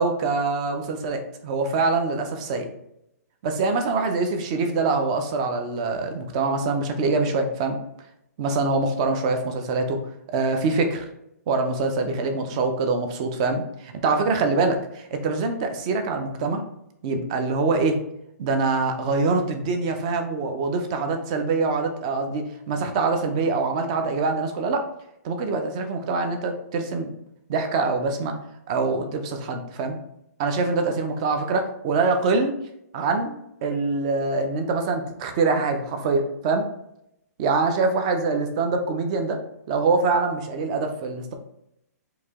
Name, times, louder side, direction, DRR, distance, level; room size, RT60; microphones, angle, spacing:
voice 1, 0.0-2.7 3.4-7.8 8.4-10.0 10.3-11.1 11.5-16.6 17.0-18.0 18.4-24.8 25.2-27.1 27.5-28.3 28.7-30.0 30.4-32.5 32.9-36.7 37.4-39.4 39.7-41.3, right 3 dB, 20° right, 5 dB, 0.4 m, -24 dB
4.7 x 2.7 x 3.5 m, 0.80 s
hypercardioid pair, 175°, 9 cm